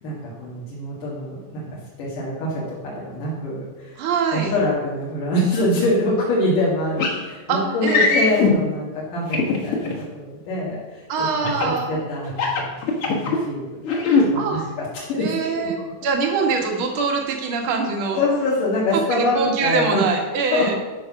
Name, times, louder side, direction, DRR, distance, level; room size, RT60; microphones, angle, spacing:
voice 1, 0.0-4.0 4.3-11.3 11.6-12.8 13.1-15.6 18.2-20.0 20.5-20.7, left 1 dB, 75° left, -7 dB, 3.6 m, -25 dB
voice 2, 4.0-4.5 7.5-8.3 11.1-12.0 14.4-14.7 15.1-18.2 18.9-20.7, right 5 dB, 50° right, 1 dB, 2.0 m, -24 dB
sound 1, 7.0-7.2 7.8-8.5 9.3-9.9 11.4-11.8 12.3-13.4 13.8-14.3, left 4 dB, 50° left, 2.3 m, -20 dB
12.0 x 6.0 x 5.9 m, 1.2 s
omnidirectional pair, 3.8 m